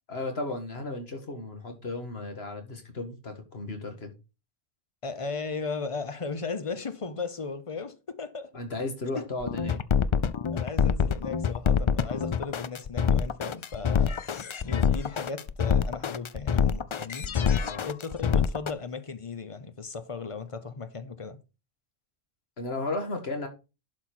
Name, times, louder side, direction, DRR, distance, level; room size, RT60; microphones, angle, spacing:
voice 1, 0.1-4.1 8.5-9.8 17.6-17.9 22.6-23.5, left 2 dB, 80° left, 2.0 m, -34 dB
voice 2, 5.0-8.5 9.1-9.3 10.5-17.3 17.8-21.4, left 4 dB, 35° left, 0.9 m, -36 dB
sound 1, 9.4-18.7, left 7 dB, 50° left, 0.3 m, -25 dB
11.5 x 4.4 x 4.4 m
omnidirectional pair, 1.0 m